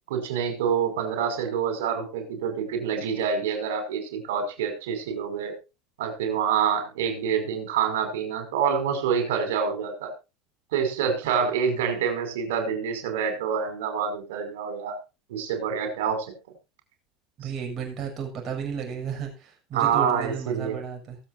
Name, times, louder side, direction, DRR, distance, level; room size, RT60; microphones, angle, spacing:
voice 1, 0.1-5.5 6.0-10.1 10.7-15.0 15.3-16.3 19.7-20.8, right 7 dB, 90° right, 6 dB, 5.3 m, -27 dB
voice 2, 17.4-21.2, right 7 dB, 40° right, 2 dB, 7.1 m, -33 dB
23.0 x 7.8 x 2.7 m, 0.28 s
supercardioid pair, 115°, 0 cm